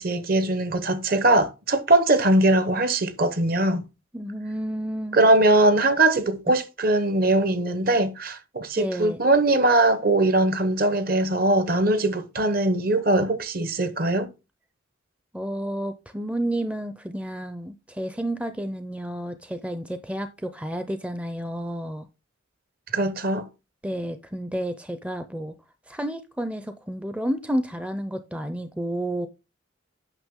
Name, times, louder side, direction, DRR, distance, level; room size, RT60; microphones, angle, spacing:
voice 1, 0.0-3.8 5.1-14.3 22.9-23.5, right 2 dB, 45° right, 0.9 m, -21 dB
voice 2, 4.1-5.2 8.8-9.2 15.3-22.1 23.8-25.5 25.9-29.3, right 1 dB, 5° right, 0.5 m, -31 dB
9.1 x 6.0 x 3.6 m
head